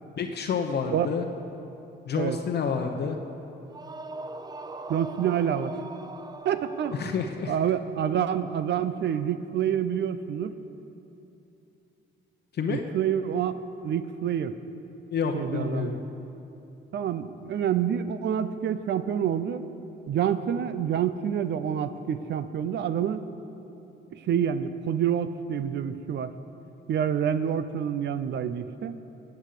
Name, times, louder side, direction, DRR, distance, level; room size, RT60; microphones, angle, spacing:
voice 1, 0.2-1.2 2.1-3.2 7.0-7.5 12.5-12.8 15.1-16.0, left 6 dB, 55° left, 3 dB, 0.9 m, -29 dB
sound 1, 3.7-7.6, right 2 dB, 20° right, 0.7 m, -41 dB
voice 2, 4.9-5.7 6.4-7.2 7.5-10.5 12.7-14.5 15.3-16.0 16.9-19.6 20.1-23.2 24.1-26.3 26.9-29.0, right 9 dB, 60° right, 12 dB, 0.6 m, -27 dB
15.5 x 8.2 x 6.7 m, 2.9 s
cardioid pair, 90°, 20 cm